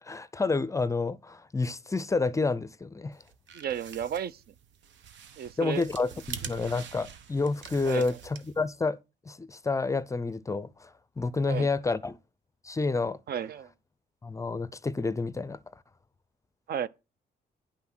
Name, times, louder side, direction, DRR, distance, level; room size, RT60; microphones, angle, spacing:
voice 1, 0.0-3.2 5.6-9.0 9.3-12.2 12.6-13.2 14.2-15.6, left 3 dB, 15° left, 0.5 m, -29 dB
sound 1, 3.2-8.7, right 8 dB, 85° right, 1.2 m, -45 dB
voice 2, 3.5-4.4 5.4-5.8 7.9-8.2 11.5-11.7 13.3-13.7 16.7-16.9, right 9 dB, 60° right, 0.6 m, -33 dB
10.0 x 5.9 x 6.0 m
cardioid pair, 145°, 18 cm